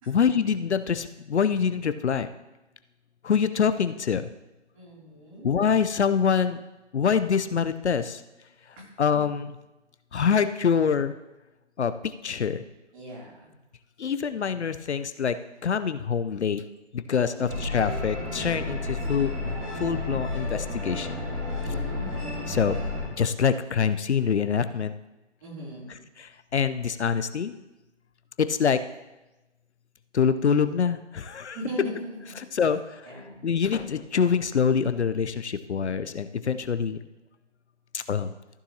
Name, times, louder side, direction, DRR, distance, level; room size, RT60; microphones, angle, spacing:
voice 1, 0.1-2.3 3.2-4.3 5.4-6.6 6.9-8.2 9.0-9.6 10.1-11.1 11.8-12.6 14.0-16.6 16.9-19.3 19.8-21.2 22.5-22.8 23.2-24.9 26.2-27.6 28.4-28.8 30.1-31.6 32.4-33.1 33.4-37.0 37.9-38.3, left 6 dB, 70° left, 11 dB, 0.6 m, -25 dB
voice 2, 4.7-5.5 8.8-8.9 12.9-13.5 17.3-17.6 21.6-22.3 22.7-22.9 25.4-26.0 31.5-32.4 33.0-33.4, equal, 30° right, -4 dB, 3.0 m, -39 dB
sound 1, 17.5-23.1, left 2 dB, 15° right, 1.4 m, -31 dB
14.5 x 7.0 x 2.8 m, 1.0 s
figure-of-eight pair, 155°, 35 cm